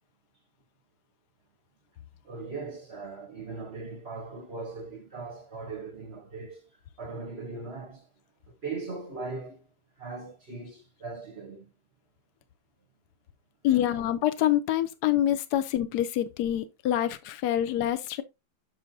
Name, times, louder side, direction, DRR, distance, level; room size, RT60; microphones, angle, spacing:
voice 1, 2.2-8.1 8.5-9.7 10.0-11.7 13.6-13.9, right 3 dB, 50° right, 0.7 m, -39 dB
voice 2, 13.6-18.2, left 12 dB, 80° left, 0.9 m, -26 dB
7.4 x 6.1 x 2.7 m
omnidirectional pair, 2.4 m